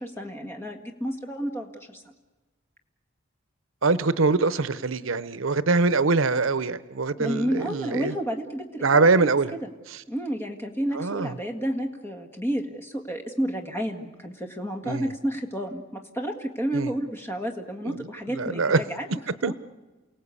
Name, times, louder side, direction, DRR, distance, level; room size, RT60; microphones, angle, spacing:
voice 1, 0.0-2.0 7.2-9.3 9.6-9.7 10.1-19.1 19.4-19.5, equal, 10° left, 3 dB, 1.8 m, -31 dB
voice 2, 3.8-8.1 8.8-9.5 10.9-11.3 14.8-15.1 16.7-16.9 17.8-18.8 19.4-19.5, right 3 dB, 80° right, 15 dB, 0.8 m, -23 dB
29.0 x 18.0 x 8.4 m, 1.2 s
head